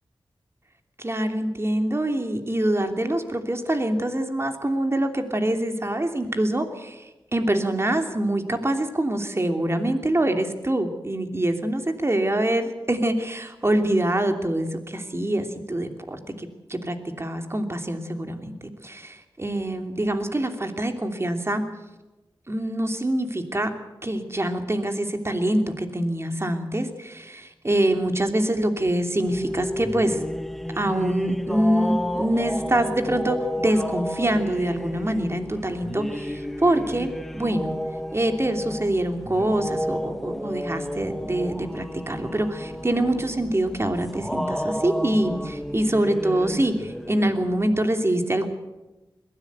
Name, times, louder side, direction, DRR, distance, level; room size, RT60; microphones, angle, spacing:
voice 1, 1.0-21.6 22.5-23.7 24.0-30.2 30.7-37.1 37.3-37.7 38.1-48.5, right 1 dB, 30° right, 6 dB, 2.9 m, -25 dB
sound 1, 29.2-47.8, equal, ahead, 1.4 m, -32 dB
22.0 x 16.0 x 8.2 m, 1.1 s
wide cardioid pair, 55°, 9 cm